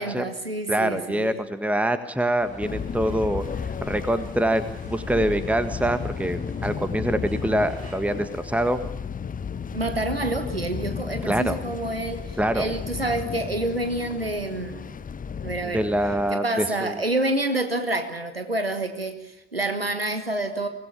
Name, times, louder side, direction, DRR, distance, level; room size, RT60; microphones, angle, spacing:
voice 1, 0.0-1.4 9.7-14.9 15.4-15.9 16.3-20.7, right 2 dB, 90° right, 8 dB, 1.3 m, -28 dB
voice 2, 0.7-3.4 3.8-8.8 11.3-11.6 12.4-12.7 15.6-16.9, right 1 dB, 5° right, 10 dB, 1.7 m, -25 dB
sound 1, 2.4-8.2, right 1 dB, 70° right, 7.9 m, -45 dB
sound 2, 2.6-16.3, left 6 dB, 30° left, 0.9 m, -34 dB
24.0 x 19.5 x 8.6 m, 0.95 s
figure-of-eight pair, 40°, 29 cm